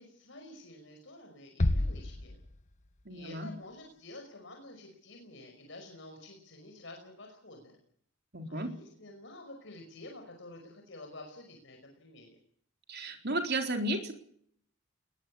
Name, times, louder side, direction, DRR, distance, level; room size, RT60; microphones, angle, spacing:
voice 1, 0.0-2.4 3.1-7.8 8.5-12.4, left 2 dB, 60° left, 3 dB, 5.6 m, -50 dB
sound 1, 1.6-3.2, left 1 dB, 35° left, 1.0 m, -31 dB
voice 2, 3.1-3.5 8.3-8.7 12.9-14.1, right 1 dB, 55° right, 4 dB, 4.1 m, -33 dB
21.5 x 18.0 x 8.6 m, 0.64 s
head